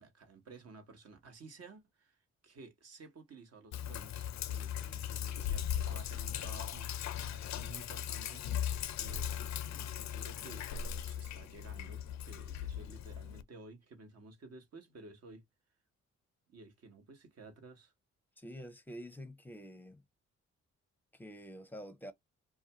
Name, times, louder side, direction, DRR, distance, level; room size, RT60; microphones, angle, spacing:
voice 1, 0.0-8.4 8.9-15.4 16.5-17.9, right 3 dB, 50° right, 1.1 m, -54 dB
Sink (filling or washing), 3.7-13.4, left 10 dB, 55° left, 0.5 m, -38 dB
voice 2, 18.4-20.0 21.1-22.1, equal, 5° left, 0.7 m, -47 dB
2.4 x 2.3 x 2.9 m
hypercardioid pair, 45°, 33 cm